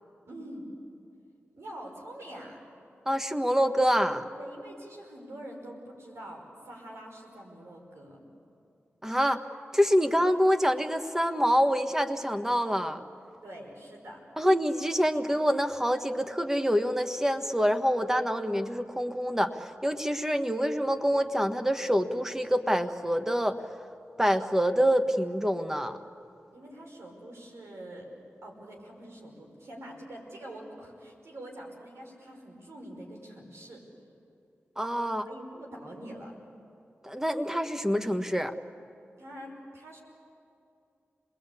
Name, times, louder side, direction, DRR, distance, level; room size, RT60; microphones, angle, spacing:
voice 1, 0.3-0.7 1.5-2.6 4.3-8.2 13.4-14.2 26.5-28.1 28.4-33.8 35.2-36.4 39.2-40.0, right 1 dB, 80° right, 0 dB, 5.7 m, -45 dB
voice 2, 3.0-4.2 9.0-9.4 9.7-13.0 14.4-23.6 24.2-26.0 34.8-35.3 37.0-38.5, equal, 10° right, 7 dB, 1.5 m, -26 dB
27.5 x 20.5 x 8.5 m, 2.5 s
cardioid pair, 45°, 5 cm